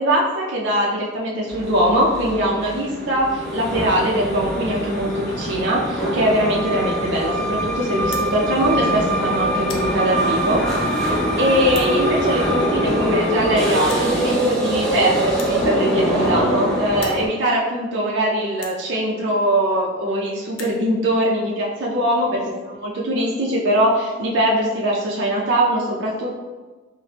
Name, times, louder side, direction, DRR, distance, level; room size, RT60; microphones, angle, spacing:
voice 1, 0.0-26.4, right 1 dB, 65° right, -3 dB, 0.4 m, -21 dB
sound 1, 1.5-17.3, right 1 dB, 5° left, 0.5 m, -23 dB
sound 2, 8.0-8.3 9.0-9.2 9.5-9.9 10.6-10.7 11.6-11.9 13.0-13.1 13.3-13.4 13.9-14.1 15.3-16.6 16.9-17.2 17.9-18.0 18.5-18.8 19.7-19.8 20.0-20.1 20.4-20.8, left 5 dB, 70° left, 0.4 m, -37 dB
2.8 x 2.0 x 3.2 m, 1.3 s
head